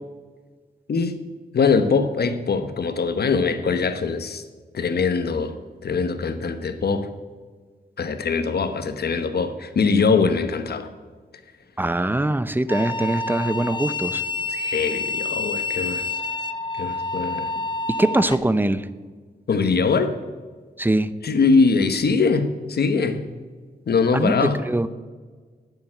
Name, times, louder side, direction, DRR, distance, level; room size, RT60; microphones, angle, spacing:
voice 1, 0.9-1.2 1.5-4.4 4.7-5.5 5.8-7.1 8.0-10.9 14.5-16.1 16.8-17.5 19.5-20.1 21.2-23.2 23.9-24.6, left 4 dB, 75° left, 9 dB, 1.1 m, -22 dB
voice 2, 11.8-14.2 18.0-18.9 20.8-21.1 24.1-24.9, right 1 dB, 10° right, 14 dB, 0.6 m, -22 dB
sound 1, 12.7-18.4, left 3 dB, 30° left, 0.7 m, -28 dB
9.8 x 7.0 x 9.0 m, 1.5 s
wide cardioid pair, 95°, 17 cm